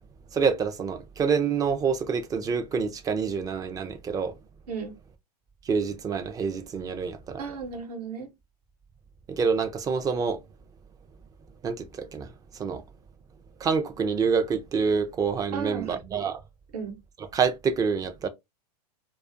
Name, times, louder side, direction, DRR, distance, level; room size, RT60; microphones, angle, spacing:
voice 1, 0.3-4.3 5.7-7.4 9.3-10.4 11.6-12.8 13.6-16.4 17.3-18.3, right 5 dB, 20° right, 0.4 m, -27 dB
voice 2, 4.7-5.0 7.4-8.3 15.5-16.0 16.7-17.0, right 6 dB, 70° right, 0.9 m, -34 dB
2.4 x 2.3 x 2.5 m
hypercardioid pair, 110°, 21 cm